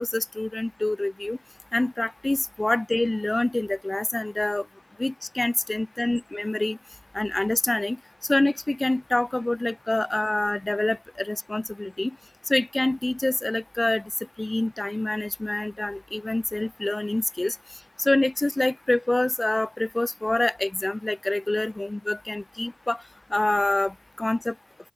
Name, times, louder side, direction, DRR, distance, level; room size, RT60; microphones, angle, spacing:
voice 1, 0.0-1.4 1.7-4.6 5.0-6.8 7.1-8.0 8.3-12.1 12.5-14.0 14.4-17.6 18.0-23.0 23.3-24.5, left 2 dB, 15° left, 0.3 m, -26 dB
open air
cardioid pair, 90°, 0 cm